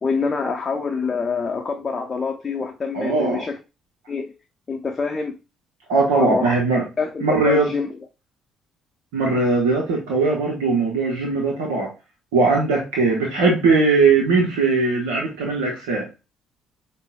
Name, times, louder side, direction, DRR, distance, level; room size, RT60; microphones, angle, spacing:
voice 1, 0.0-3.6 4.1-4.3 4.7-5.4 6.2-6.6 7.0-7.9, left 4 dB, 35° left, 0.5 m, -25 dB
voice 2, 2.9-3.4 5.9-6.8 7.2-7.7 9.1-11.9 12.3-16.1, right 3 dB, 70° right, 0.7 m, -19 dB
5.3 x 2.0 x 2.3 m
figure-of-eight pair, 50°, 0 cm